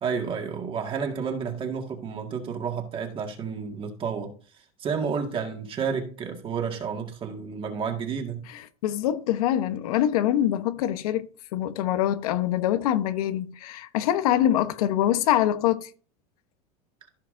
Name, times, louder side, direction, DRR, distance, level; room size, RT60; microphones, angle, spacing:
voice 1, 0.0-4.3 4.8-8.5, right 6 dB, 30° right, 1.9 m, -31 dB
voice 2, 8.8-15.9, left 12 dB, 80° left, 1.0 m, -24 dB
15.0 x 5.9 x 2.6 m
supercardioid pair, 145°, 19 cm